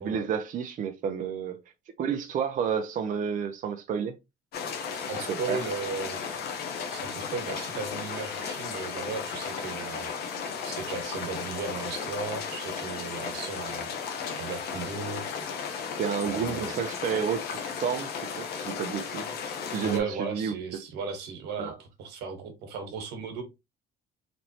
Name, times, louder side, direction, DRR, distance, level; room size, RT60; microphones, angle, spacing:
voice 1, 0.0-1.6 2.0-4.1 5.3-5.6 16.0-18.1 18.4-19.3 19.7-20.5 21.6-21.8, right 7 dB, 50° right, 0.6 m, -30 dB
sound 1, 4.5-20.0, left 6 dB, 70° left, 1.0 m, -35 dB
voice 2, 4.9-6.5 6.9-10.1 10.6-13.9 14.4-15.3 16.2-16.7 19.8-23.4, right 5 dB, 80° right, 1.4 m, -36 dB
4.2 x 3.1 x 2.9 m
cardioid pair, 110°, 17 cm